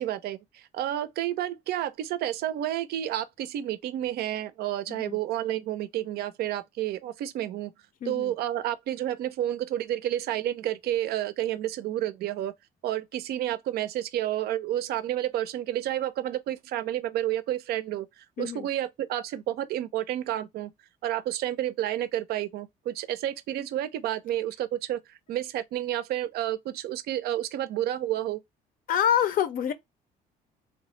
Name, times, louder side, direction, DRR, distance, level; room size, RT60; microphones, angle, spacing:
voice 1, 0.0-7.7 8.0-12.5 12.8-20.7 21.0-28.4, right 12 dB, 70° right, 0.4 m, -30 dB
voice 2, 8.0-8.3 18.4-18.7 28.9-29.7, left 9 dB, 55° left, 0.6 m, -26 dB
3.1 x 2.0 x 3.0 m
cardioid pair, 110°, 17 cm